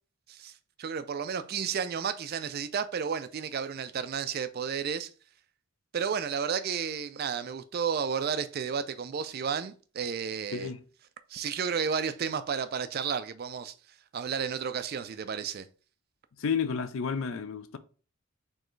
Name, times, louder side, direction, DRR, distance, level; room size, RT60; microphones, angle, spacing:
voice 1, 0.8-5.1 5.9-10.7 11.3-13.7 14.1-15.7, right 6 dB, 45° right, 0.3 m, -32 dB
voice 2, 16.4-17.8, left 6 dB, 65° left, 0.4 m, -31 dB
4.4 x 3.3 x 3.1 m
head